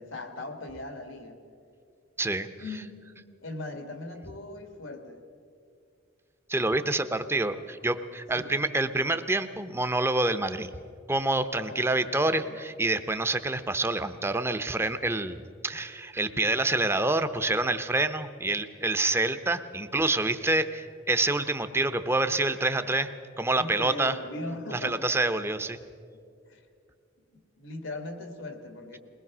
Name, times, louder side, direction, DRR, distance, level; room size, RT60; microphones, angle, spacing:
voice 1, 0.0-1.4 2.6-5.2 8.3-8.6 11.7-12.6 22.7-23.1 23.6-25.1 26.5-26.6 27.3-29.0, left 2 dB, 90° left, 6 dB, 2.1 m, -40 dB
voice 2, 6.5-10.8 11.1-23.1 23.4-24.2 24.7-25.8, right 2 dB, 15° right, 10 dB, 0.7 m, -27 dB
21.5 x 19.5 x 6.1 m, 2.4 s
head